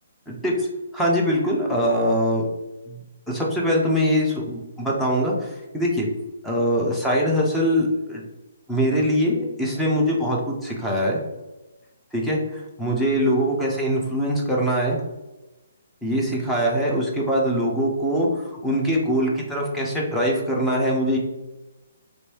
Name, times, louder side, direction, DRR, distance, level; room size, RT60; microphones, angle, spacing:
voice 1, 0.3-0.7 0.9-2.5 2.9-3.0 3.3-6.1 6.4-8.2 8.7-11.2 12.1-15.0 16.0-21.2, equal, 5° left, -4 dB, 0.6 m, -23 dB
3.0 x 3.0 x 2.9 m, 1.0 s
figure-of-eight pair, 135°, 0 cm